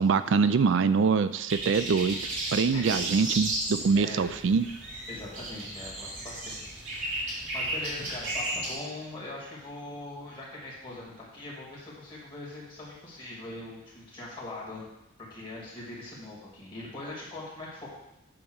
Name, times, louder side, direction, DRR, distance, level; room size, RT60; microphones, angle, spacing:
voice 1, 0.0-2.2 2.5-4.6, right 5 dB, 65° right, 13 dB, 0.4 m, -24 dB
sound 1, 1.5-8.8, right 1 dB, 85° right, 2.5 m, -34 dB
voice 2, 3.9-4.3 5.1-14.9 15.3-17.9, left 2 dB, 25° left, -6 dB, 2.4 m, -41 dB
8.7 x 3.0 x 6.4 m, 0.88 s
head